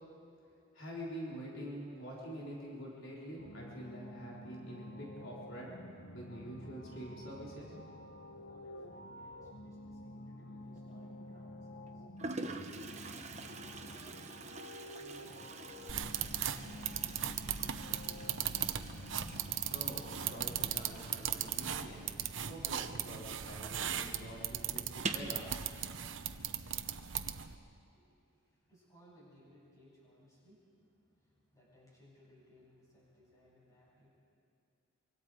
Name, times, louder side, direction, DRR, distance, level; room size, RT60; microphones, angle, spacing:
voice 1, 0.7-5.7 6.1-7.8 19.4-22.1 22.5-25.5, right 1 dB, 70° left, -4 dB, 3.8 m, -46 dB
sound 1, 3.4-20.6, left 1 dB, 55° left, 1.3 m, -50 dB
voice 2, 8.4-12.0 13.7-14.1 15.0-18.6 27.9-30.7 31.1-34.1, left 1 dB, 15° left, -6 dB, 7.4 m, -63 dB
Toilet flush, 10.7-11.2 11.9-12.0 12.2-23.5 23.7-23.8 24.1-24.2 24.9-25.4, right 3 dB, 35° right, 1.1 m, -46 dB
sound 2, 15.9-27.6, right 9 dB, 65° right, 0.9 m, -38 dB
25.0 x 24.5 x 4.8 m, 2.5 s
head